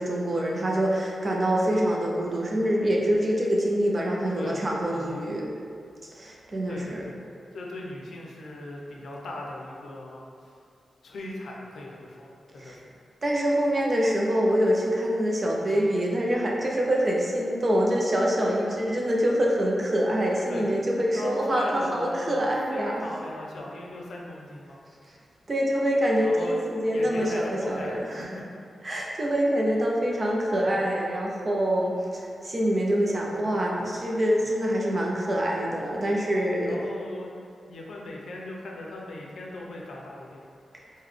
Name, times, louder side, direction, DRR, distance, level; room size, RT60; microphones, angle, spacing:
voice 1, 0.0-5.5 6.1-7.0 12.6-12.8 13.2-23.0 25.5-28.3 28.8-36.8, equal, 35° right, -2 dB, 0.4 m, -25 dB
voice 2, 4.9-5.3 6.3-6.4 6.7-7.2 7.5-10.6 11.0-12.9 20.5-20.6 21.1-24.8 26.2-28.4 30.5-30.7 36.6-37.3 37.7-40.5 40.8-40.9, left 1 dB, 90° left, -2 dB, 0.5 m, -39 dB
3.8 x 2.1 x 3.2 m, 2.4 s
wide cardioid pair, 145°, 0 cm